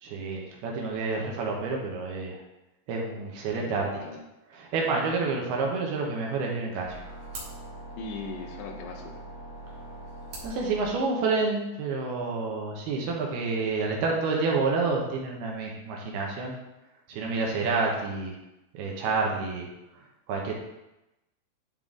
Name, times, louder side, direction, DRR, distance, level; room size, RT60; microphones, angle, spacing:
voice 1, 0.0-2.4 2.9-3.9 4.6-6.9 10.4-16.6 17.1-18.4 18.7-19.7 20.3-20.5, right 4 dB, 75° right, -1 dB, 2.8 m, -29 dB
voice 2, 3.5-4.3 7.9-9.2, left 4 dB, 80° left, 3 dB, 2.8 m, -40 dB
sound 1, 6.5-11.5, right 2 dB, 60° right, 2.7 m, -49 dB
sound 2, 6.8-10.9, right 1 dB, 50° left, 1.3 m, -43 dB
10.5 x 3.7 x 3.7 m, 0.94 s
omnidirectional pair, 4.9 m